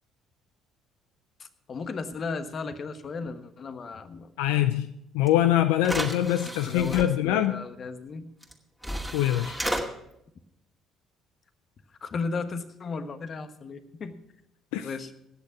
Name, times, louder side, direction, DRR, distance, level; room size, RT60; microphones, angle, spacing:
voice 1, 1.4-4.3 6.4-8.3 12.0-14.1 14.8-15.1, left 4 dB, 45° left, 10 dB, 1.2 m, -35 dB
voice 2, 4.4-4.9 5.1-7.6 9.1-9.6 14.7-14.9, left 12 dB, 85° left, 10 dB, 0.5 m, -24 dB
sound 1, 5.3-5.4 5.8-7.1 8.4-8.5 8.8-9.8, equal, ahead, 2.3 m, -32 dB
17.5 x 6.8 x 6.0 m, 0.79 s
hypercardioid pair, 65°, 0 cm